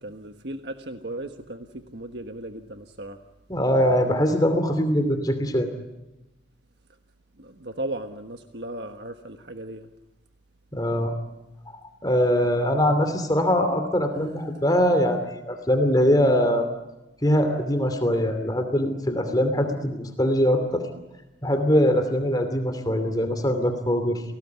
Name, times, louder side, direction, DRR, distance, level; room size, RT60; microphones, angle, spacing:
voice 1, 0.0-3.2 7.4-9.9 14.5-14.6, right 1 dB, 70° right, 6 dB, 1.4 m, -36 dB
voice 2, 3.5-5.7 10.7-11.1 12.0-16.7 17.2-20.9 21.4-24.2, equal, 20° left, 7 dB, 2.8 m, -22 dB
29.5 x 19.0 x 9.5 m, 0.98 s
head